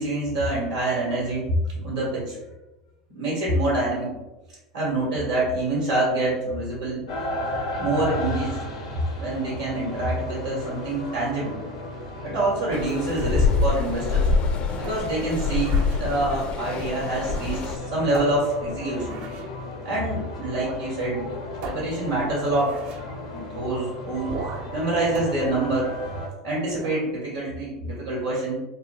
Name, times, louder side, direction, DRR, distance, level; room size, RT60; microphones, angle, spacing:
voice 1, 0.0-2.4 3.1-4.1 4.7-7.0 7.8-8.6 9.1-11.6 12.2-14.3 14.8-19.2 19.8-21.3 21.6-22.8 23.3-24.3 24.7-25.9 26.4-28.6, right 2 dB, 85° right, -7 dB, 1.4 m, -26 dB
sound 1, 7.1-26.3, left 1 dB, 85° left, 0.8 m, -35 dB
sound 2, 12.7-17.8, left 4 dB, 40° left, 0.4 m, -25 dB
sound 3, 14.8-16.0 17.1-17.8 18.1-19.6 20.6-20.9 21.1-21.2 21.6-23.1 24.3-24.8 25.1-26.3 26.7-27.1, right 4 dB, 55° right, 0.4 m, -39 dB
2.9 x 2.2 x 3.0 m, 1.0 s
hypercardioid pair, 85°, 3 cm